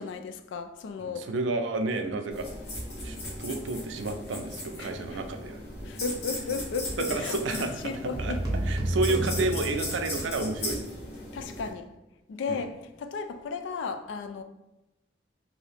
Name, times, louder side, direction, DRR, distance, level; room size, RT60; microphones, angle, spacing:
voice 1, 0.0-1.3 4.8-5.2 5.8-8.4 11.3-11.9 12.3-14.4, left 4 dB, 85° left, 0.3 m, -35 dB
voice 2, 1.0-2.5 3.0-5.6 7.0-8.4 8.6-10.8 12.5-12.7, right 3 dB, 90° right, 0.4 m, -31 dB
sound 1, 2.3-11.7, left 1 dB, 55° left, 0.9 m, -37 dB
sound 2, 8.1-10.4, right 1 dB, 20° right, 0.6 m, -30 dB
2.8 x 2.7 x 3.3 m
head